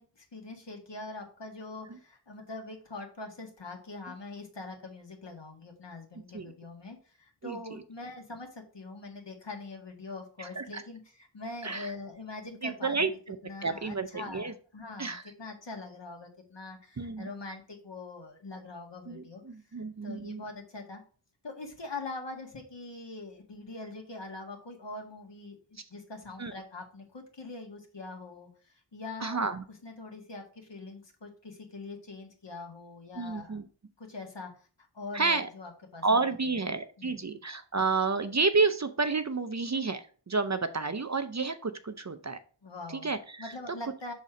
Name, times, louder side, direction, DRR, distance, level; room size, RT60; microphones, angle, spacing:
voice 1, 0.0-13.1 13.4-19.4 20.0-21.0 21.4-29.4 29.8-33.6 34.0-34.7 34.9-36.6 37.0-37.3 42.6-43.1 43.4-44.1, left 3 dB, 65° left, 2 dB, 1.8 m, -43 dB
voice 2, 7.4-7.8 10.4-10.8 11.6-11.9 12.6-13.4 13.6-14.5 15.0-15.2 17.0-17.3 19.1-20.4 26.4-26.5 29.2-29.6 33.2-33.6 35.1-35.5 36.0-42.4 42.9-43.5, right 4 dB, 35° right, 10 dB, 0.6 m, -30 dB
6.1 x 4.2 x 4.9 m, 0.40 s
wide cardioid pair, 50°, 46 cm